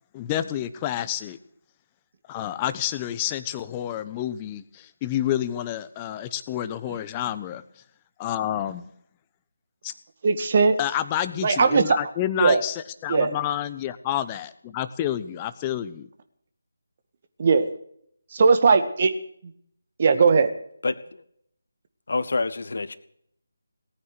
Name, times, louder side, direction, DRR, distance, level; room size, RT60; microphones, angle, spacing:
voice 1, 0.1-1.4 2.3-7.6 8.2-8.9 9.8-9.9 10.8-16.1, left 11 dB, 20° left, 13 dB, 0.9 m, -29 dB
voice 2, 10.2-10.8 11.4-11.8 12.4-12.6 13.1-13.3 17.4-17.7 18.3-19.1 20.0-20.5, right 4 dB, 40° right, 9 dB, 1.9 m, -18 dB
voice 3, 20.8-21.2 22.1-22.9, left 3 dB, 60° left, 13 dB, 1.4 m, -27 dB
18.5 x 9.6 x 8.0 m, 0.68 s
figure-of-eight pair, 155°, 0 cm